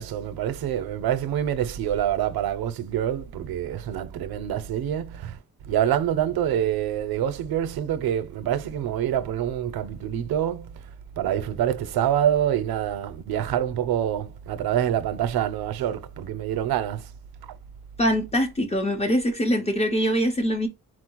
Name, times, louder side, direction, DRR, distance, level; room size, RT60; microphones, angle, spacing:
voice 1, 0.0-5.4 5.7-10.8 11.2-17.0, right 10 dB, 90° right, 0.6 m, -26 dB
voice 2, 18.0-20.7, equal, 20° left, 0.7 m, -23 dB
4.5 x 2.0 x 4.4 m
wide cardioid pair, 175°, 35 cm